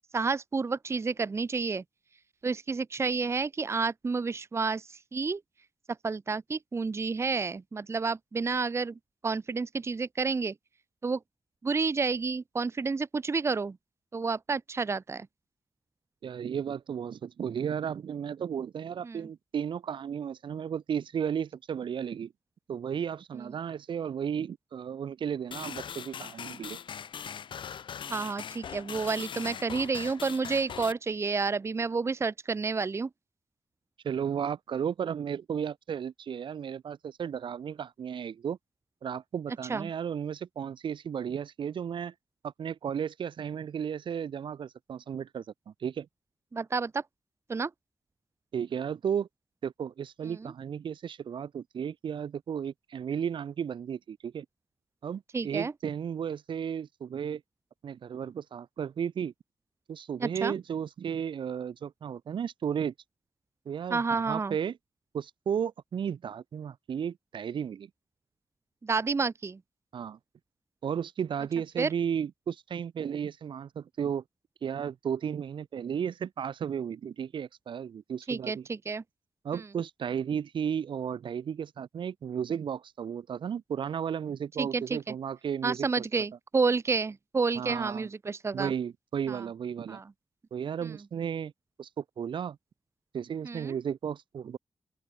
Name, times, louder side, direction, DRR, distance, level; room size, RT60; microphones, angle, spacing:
voice 1, 0.1-1.8 2.4-5.4 6.0-10.5 11.0-11.2 11.6-13.8 14.1-15.3 19.0-19.3 23.3-23.5 28.1-33.1 39.7-39.9 46.5-47.0 47.5-47.7 50.3-50.5 55.3-55.7 60.2-60.5 63.9-64.6 68.8-69.6 71.8-71.9 78.3-79.0 79.5-79.6 84.6-85.1 85.6-88.7 89.3-89.4 89.9-90.0 90.8-90.9 93.4-93.7, right 4 dB, 35° right, 0.7 m, -30 dB
voice 2, 16.2-22.3 22.7-26.8 34.0-38.6 39.0-42.1 42.4-46.1 48.5-49.3 49.6-54.5 55.0-57.4 57.8-59.3 59.9-62.9 63.6-64.8 65.1-67.9 69.9-70.2 70.8-74.2 74.6-78.6 79.4-86.0 87.5-88.1 88.5-90.0 90.5-91.5 91.8-92.6 93.1-94.6, right 8 dB, 85° right, 1.1 m, -34 dB
sound 1, 25.5-30.9, left 8 dB, 85° left, 1.4 m, -40 dB
open air
wide cardioid pair, 110°, 8 cm